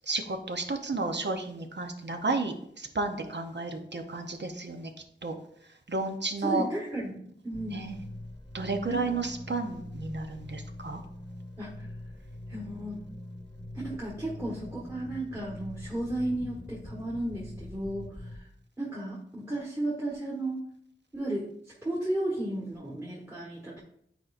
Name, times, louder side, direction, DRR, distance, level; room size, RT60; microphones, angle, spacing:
voice 1, 0.1-4.9 5.2-5.3 5.9-6.7 7.7-8.0 8.5-11.0, right 3 dB, 65° right, 5 dB, 0.8 m, -32 dB
voice 2, 6.4-8.0 8.9-9.2 11.6-11.9 12.5-13.1 13.7-18.5 18.8-20.6 21.1-21.5 21.8-23.8, right 1 dB, 15° right, -5 dB, 1.4 m, -34 dB
sound 1, 7.5-18.4, left 1 dB, 25° left, 1.0 m, -43 dB
9.2 x 4.4 x 2.5 m, 0.70 s
wide cardioid pair, 50°, 20 cm